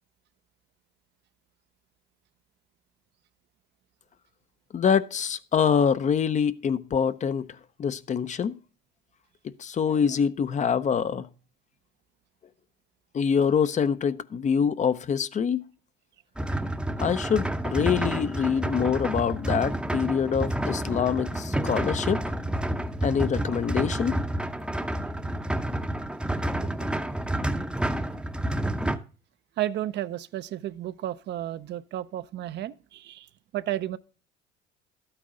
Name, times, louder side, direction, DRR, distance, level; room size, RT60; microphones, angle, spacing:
voice 1, 4.7-7.5 7.8-8.5 9.6-11.3 13.1-15.6 17.0-22.3 23.0-24.2, left 7 dB, 35° left, 0.6 m, -25 dB
sound 1, 16.4-29.0, right 1 dB, 5° right, 0.7 m, -29 dB
voice 2, 29.6-33.3 33.5-34.0, right 13 dB, 60° right, 0.6 m, -32 dB
12.0 x 8.9 x 3.8 m
supercardioid pair, 90°, 20 cm